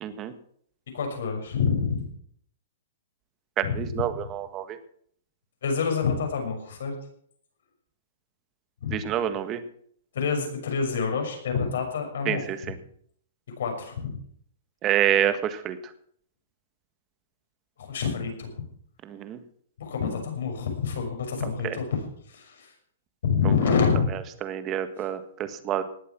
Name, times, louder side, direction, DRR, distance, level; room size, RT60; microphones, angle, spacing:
voice 1, 0.0-0.3 3.7-4.8 8.9-9.6 12.2-12.7 14.8-15.8 19.0-19.4 21.6-21.8 24.4-25.8, right 10 dB, 25° right, 10 dB, 1.5 m, -27 dB
voice 2, 0.9-2.1 3.6-3.7 5.6-6.9 8.8-9.0 10.1-12.4 13.6-14.2 17.8-18.5 19.8-22.7 23.2-24.1, left 5 dB, 70° left, 3 dB, 6.2 m, -27 dB
19.0 x 8.4 x 6.1 m, 0.64 s
hypercardioid pair, 140°, 0 cm